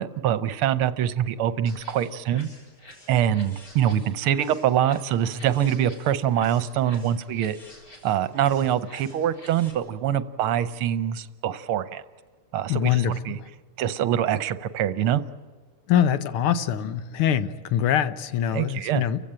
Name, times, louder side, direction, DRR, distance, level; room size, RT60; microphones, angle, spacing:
voice 1, 0.0-2.5 3.1-7.6 8.0-12.0 12.5-13.4 13.8-15.2 18.5-19.1, right 10 dB, 80° right, 14 dB, 1.7 m, -24 dB
sound 1, 1.7-9.7, left 1 dB, 40° left, 4.6 m, -49 dB
voice 2, 12.7-13.5 15.9-19.2, left 9 dB, 80° left, 13 dB, 1.8 m, -24 dB
29.5 x 15.5 x 8.8 m, 1.5 s
omnidirectional pair, 2.4 m